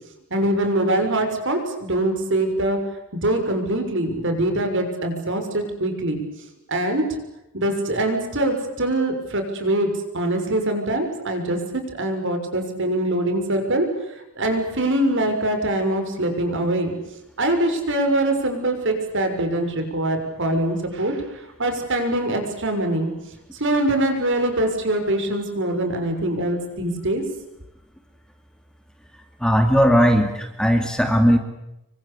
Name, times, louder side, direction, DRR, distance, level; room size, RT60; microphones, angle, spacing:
voice 1, 0.3-2.8 3.2-6.2 6.7-7.0 7.5-13.9 14.4-16.9 17.4-23.1 23.5-27.2, right 1 dB, 55° right, 6 dB, 6.4 m, -23 dB
voice 2, 29.4-31.4, equal, 5° left, 6 dB, 2.5 m, -17 dB
27.5 x 24.5 x 8.5 m, 0.88 s
head